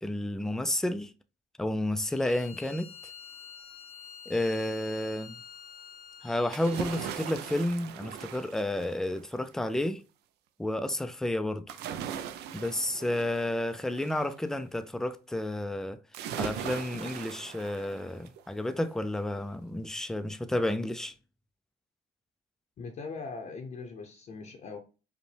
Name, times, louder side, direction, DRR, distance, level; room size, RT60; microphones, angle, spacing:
voice 1, 0.0-1.1 1.6-2.9 4.3-5.4 6.2-10.0 10.6-11.8 12.5-16.0 16.4-21.1, left 1 dB, 5° left, 0.3 m, -31 dB
Bowed string instrument, 2.0-7.4, left 7 dB, 85° left, 0.8 m, -48 dB
sound 1, 6.5-9.3 11.7-14.3 16.1-18.4 18.8-18.9, right 9 dB, 80° right, 0.4 m, -39 dB
voice 2, 22.8-24.8, left 4 dB, 45° left, 0.7 m, -40 dB
5.1 x 2.1 x 3.2 m
cardioid pair, 110°, 17 cm